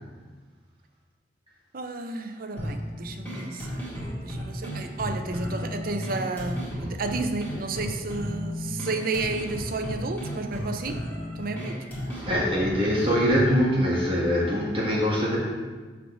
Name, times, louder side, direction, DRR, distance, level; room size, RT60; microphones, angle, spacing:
voice 1, 1.7-3.9 4.2-11.1 11.4-11.8, right 3 dB, 55° right, 7 dB, 0.6 m, -32 dB
sound 1, 2.6-13.6, equal, 10° left, 1.9 m, -34 dB
voice 2, 12.1-15.4, equal, 30° right, -5 dB, 1.3 m, -23 dB
6.1 x 3.6 x 5.9 m, 1.4 s
head